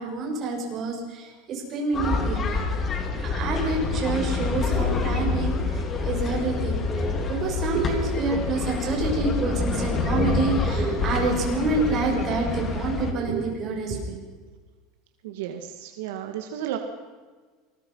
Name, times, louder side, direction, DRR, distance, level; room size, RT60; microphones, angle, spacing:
voice 1, 0.0-2.5 3.2-6.8 7.3-14.2, right 3 dB, 35° right, 0 dB, 7.0 m, -27 dB
sound 1, 1.9-13.1, left 4 dB, 25° left, 3.0 m, -27 dB
voice 2, 15.2-16.8, right 11 dB, 80° right, 5 dB, 2.3 m, -33 dB
27.0 x 21.0 x 5.8 m, 1.4 s
supercardioid pair, 150°, 0 cm